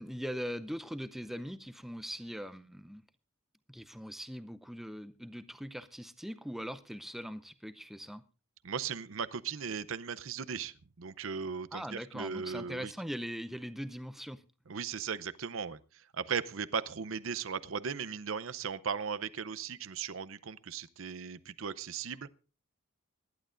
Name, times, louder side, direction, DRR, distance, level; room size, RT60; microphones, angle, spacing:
voice 1, 0.0-3.0 3.7-8.2 11.7-14.4, equal, ahead, 0.5 m, -41 dB
voice 2, 8.6-12.9 14.7-22.3, right 6 dB, 75° right, 0.7 m, -37 dB
25.0 x 11.5 x 2.5 m
head